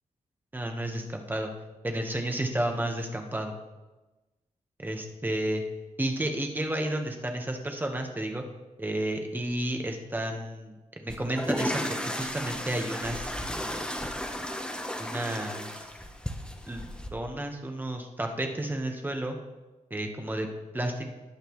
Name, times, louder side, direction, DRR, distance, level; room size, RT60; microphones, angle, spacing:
voice 1, 0.5-1.5 1.8-3.5 4.8-5.6 6.0-8.4 8.8-13.8 15.0-15.8 16.7-19.4 19.9-21.1, right 1 dB, 15° right, 3 dB, 1.2 m, -32 dB
sound 1, 11.1-17.1, equal, 5° left, 0.9 m, -34 dB
18.5 x 7.8 x 3.2 m, 1.1 s
wide cardioid pair, 145°, 13 cm